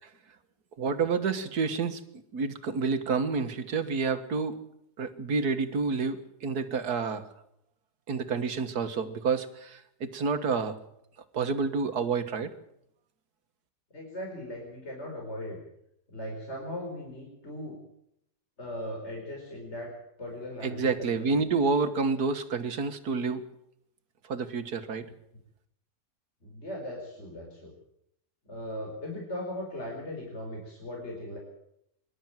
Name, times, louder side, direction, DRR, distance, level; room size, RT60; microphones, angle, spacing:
voice 1, 0.8-2.0 2.3-4.6 5.0-7.3 8.1-10.8 11.3-12.5 20.6-23.4 24.3-25.1, right 4 dB, 75° right, 9 dB, 2.0 m, -29 dB
voice 2, 13.9-15.6 16.1-17.8 18.6-19.9 20.2-21.2 26.4-27.7 28.5-31.4, left 1 dB, 40° left, 0 dB, 5.2 m, -38 dB
24.5 x 12.0 x 9.1 m, 0.77 s
omnidirectional pair, 1.7 m